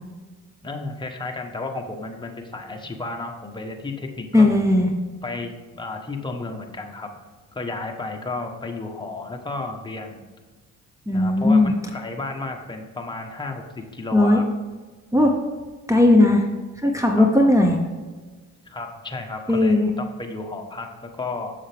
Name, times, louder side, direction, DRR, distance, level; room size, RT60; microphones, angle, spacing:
voice 1, 0.6-4.5 5.2-7.1 7.5-10.2 11.1-14.4 17.2-17.3 18.6-21.5, left 3 dB, 15° left, 2 dB, 1.2 m, -33 dB
voice 2, 4.3-4.9 11.1-11.7 14.1-14.4 15.1-15.4 15.9-16.4 16.8-17.8 19.5-19.9, left 2 dB, 10° right, 2 dB, 0.9 m, -17 dB
7.3 x 7.1 x 3.5 m, 1.3 s
cardioid pair, 90°, 30 cm